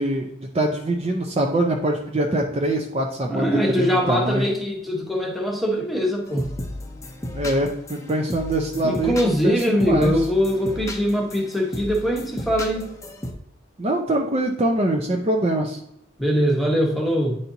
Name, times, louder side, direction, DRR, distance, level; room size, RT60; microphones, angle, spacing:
voice 1, 0.0-3.5 3.8-4.4 7.3-10.1 13.8-15.8, right 1 dB, 30° right, 1 dB, 0.6 m, -23 dB
voice 2, 3.3-6.5 8.8-12.9 16.2-17.4, equal, ahead, -1 dB, 1.1 m, -22 dB
sound 1, 6.3-13.3, left 1 dB, 15° left, 0.6 m, -34 dB
9.0 x 4.2 x 2.7 m, 0.73 s
head